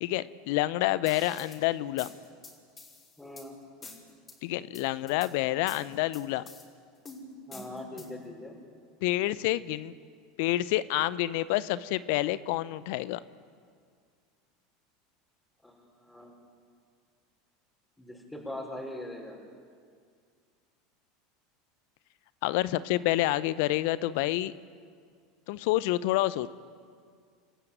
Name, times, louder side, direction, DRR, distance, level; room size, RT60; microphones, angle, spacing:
voice 1, 0.0-2.1 4.4-6.4 9.0-9.9 10.4-13.2 22.4-24.5 25.5-26.5, left 16 dB, 65° left, 17 dB, 0.6 m, -28 dB
sound 1, 1.1-1.6 2.0-3.5 3.8-4.4 4.7-5.3 5.7-6.6 7.1-8.3, left 3 dB, 30° left, 5.6 m, -47 dB
voice 2, 3.2-3.6 7.5-8.6 15.6-16.4 18.0-19.4, left 1 dB, 5° left, -3 dB, 5.4 m, -41 dB
29.0 x 13.5 x 9.1 m, 2.1 s
hypercardioid pair, 80°, 0 cm